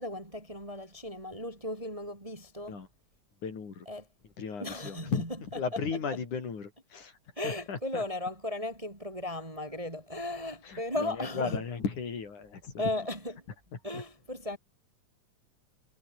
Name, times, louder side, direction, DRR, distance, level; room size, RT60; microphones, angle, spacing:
voice 1, 0.0-2.8 3.9-4.1 4.6-5.4 6.1-6.2 7.4-11.6 12.8-13.3 13.8-14.6, left 1 dB, 10° right, 2.5 m, -36 dB
voice 2, 3.4-3.9 4.4-5.2 5.6-7.1 7.4-8.0 10.6-12.8 13.9-14.0, left 5 dB, 70° left, 5.4 m, -35 dB
omnidirectional pair, 3.6 m